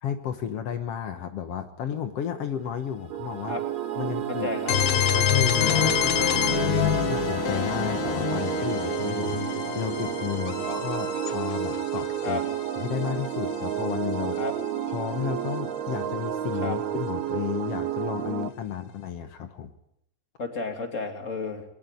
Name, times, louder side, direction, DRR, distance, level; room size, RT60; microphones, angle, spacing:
voice 1, 0.0-3.6 4.0-4.5 5.1-6.6 7.1-12.4 12.8-14.4 14.9-19.7, left 9 dB, 80° left, 8 dB, 1.3 m, -32 dB
sound 1, 2.5-9.7, right 4 dB, 45° right, 2.2 m, -45 dB
sound 2, 3.1-18.5, right 10 dB, 75° right, 3.0 m, -31 dB
voice 2, 3.9-4.8 10.5-10.7 12.2-12.4 14.4-14.5 16.6-16.8 20.4-21.7, left 3 dB, 20° left, 4 dB, 2.5 m, -32 dB
sound 3, 4.7-14.4, left 11 dB, 65° left, 2.6 m, -27 dB
22.5 x 19.0 x 9.2 m, 0.78 s
omnidirectional pair, 4.6 m